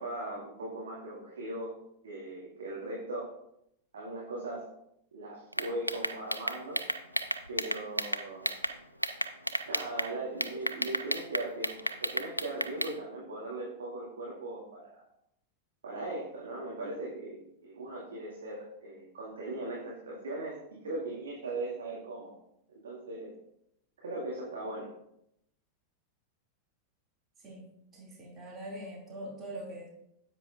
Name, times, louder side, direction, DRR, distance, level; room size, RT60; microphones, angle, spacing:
voice 1, 0.0-1.7 2.0-3.3 3.9-4.6 5.1-6.8 7.5-8.5 9.7-15.0 15.8-20.5 20.8-22.3 22.8-23.3 24.0-24.9, right 2 dB, 65° right, -5 dB, 2.3 m, -39 dB
sound 1, 5.5-8.7 9.0-10.1 10.4-12.9, equal, 90° left, 0.5 m, -32 dB
voice 2, 27.9-29.9, right 1 dB, 25° right, -3 dB, 2.7 m, -43 dB
9.9 x 8.3 x 2.6 m, 0.77 s
figure-of-eight pair, 90°, 0 cm